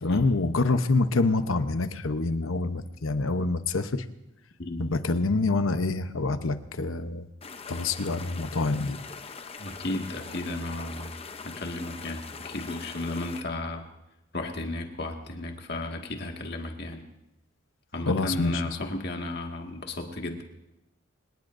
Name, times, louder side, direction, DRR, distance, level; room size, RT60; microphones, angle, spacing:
voice 1, 0.0-4.0 4.8-7.3 7.7-9.0 18.1-18.6, left 3 dB, 90° left, 10 dB, 0.9 m, -26 dB
sound 1, 7.4-13.4, left 5 dB, 30° left, 0.7 m, -42 dB
voice 2, 9.6-11.2 11.4-13.9 14.3-17.1 17.9-20.4, left 2 dB, 55° left, 2 dB, 2.0 m, -34 dB
25.5 x 19.0 x 2.7 m, 0.89 s
head